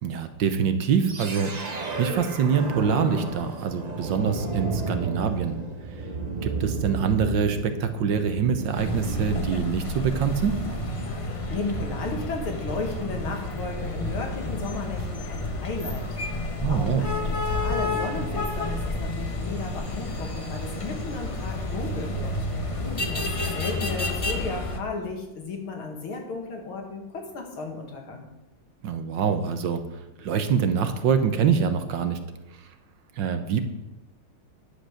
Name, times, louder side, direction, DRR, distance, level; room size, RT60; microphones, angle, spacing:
voice 1, 0.0-5.6 5.9-6.0 6.4-10.6 16.6-17.1 28.8-29.8 30.2-32.2 32.6-32.7 33.2-33.6, right 7 dB, 65° right, 8 dB, 1.4 m, -25 dB
sound 1, 1.0-12.2, right 3 dB, 40° right, 0.6 m, -33 dB
sound 2, 8.7-24.8, left 2 dB, 50° left, 0.4 m, -30 dB
voice 2, 11.2-16.1 16.4-22.3 22.7-28.3, left 3 dB, 80° left, 2 dB, 2.7 m, -35 dB
10.5 x 7.8 x 6.4 m, 0.99 s
omnidirectional pair, 2.3 m